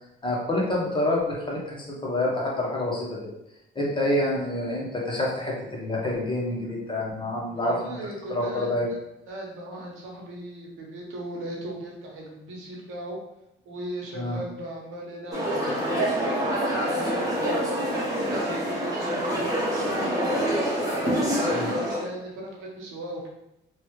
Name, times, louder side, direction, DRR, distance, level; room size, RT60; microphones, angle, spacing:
voice 1, 0.2-3.1 3.7-8.0 8.3-8.9 14.1-14.4 21.5-21.7, left 1 dB, 25° left, -3 dB, 1.0 m, -27 dB
voice 2, 7.5-9.0 9.3-13.2 13.6-20.2 20.9-23.3, right 1 dB, 85° right, -1 dB, 0.9 m, -38 dB
sound 1, 15.3-22.1, equal, 15° right, 1.1 m, -26 dB
3.0 x 2.3 x 3.0 m, 0.84 s
cardioid pair, 90°, 20 cm